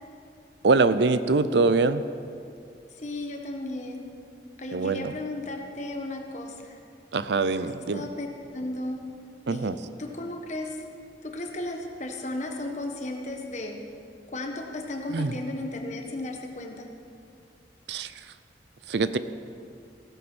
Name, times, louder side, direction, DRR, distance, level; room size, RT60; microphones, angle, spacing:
voice 1, 0.6-2.0 4.7-5.1 7.1-8.1 9.5-9.8 15.1-15.3 17.9-18.1 18.9-19.2, right 3 dB, 70° right, 13 dB, 0.6 m, -23 dB
voice 2, 3.0-4.0 4.6-6.8 7.9-8.3 8.5-9.1 9.5-9.7 10.0-10.8 11.2-13.8 14.3-16.9, left 2 dB, 40° left, 2 dB, 1.3 m, -34 dB
16.0 x 9.2 x 6.1 m, 2.4 s
head